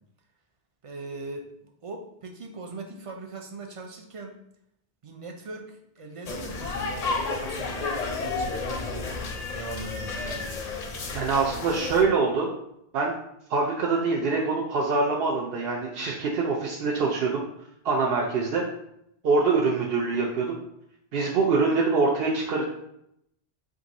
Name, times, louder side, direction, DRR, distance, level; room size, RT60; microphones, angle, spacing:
voice 1, 0.8-4.4 5.0-9.2 9.5-10.6, right 3 dB, 45° right, 2 dB, 0.5 m, -40 dB
sound 1, 6.3-12.0, left 3 dB, 50° left, 0.5 m, -32 dB
voice 2, 11.1-12.5 12.9-13.1 13.5-17.4 17.8-18.6 19.2-20.6 21.1-22.6, right 4 dB, 70° right, -2 dB, 0.8 m, -24 dB
3.6 x 2.5 x 4.0 m, 0.77 s
omnidirectional pair, 1.1 m